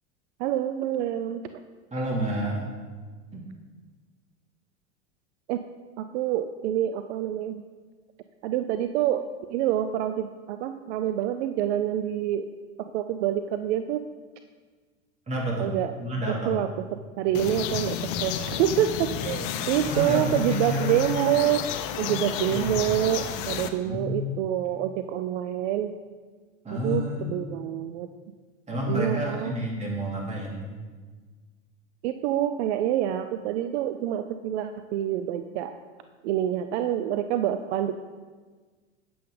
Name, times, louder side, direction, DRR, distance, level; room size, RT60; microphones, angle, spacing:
voice 1, 0.4-1.4 5.5-5.6 6.0-7.6 8.4-9.2 9.5-12.4 12.9-14.0 15.6-15.9 16.5-16.7 17.2-21.6 22.0-25.9 26.7-28.1 28.9-29.6 32.0-35.7 36.2-38.0, right 11 dB, 65° right, 9 dB, 0.6 m, -27 dB
voice 2, 1.9-2.7 3.3-3.5 15.3-15.7 16.0-16.5 19.8-21.0 22.5-22.9 23.8-24.4 26.6-27.3 28.7-30.7, equal, 20° right, -3 dB, 2.7 m, -29 dB
sound 1, 17.3-23.7, left 9 dB, 50° left, 0.8 m, -32 dB
9.2 x 7.7 x 3.9 m, 1.4 s
hypercardioid pair, 100°, 37 cm